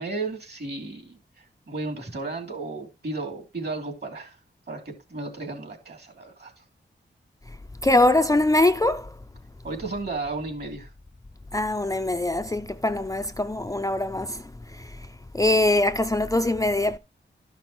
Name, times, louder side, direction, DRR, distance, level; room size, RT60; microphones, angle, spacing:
voice 1, 0.0-4.4 4.7-6.6 9.6-10.9, right 3 dB, 55° right, 2.9 m, -34 dB
voice 2, 7.8-9.1 11.5-14.4 15.3-17.0, left 2 dB, 15° left, 0.4 m, -22 dB
12.5 x 5.9 x 3.1 m
wide cardioid pair, 105°, 20 cm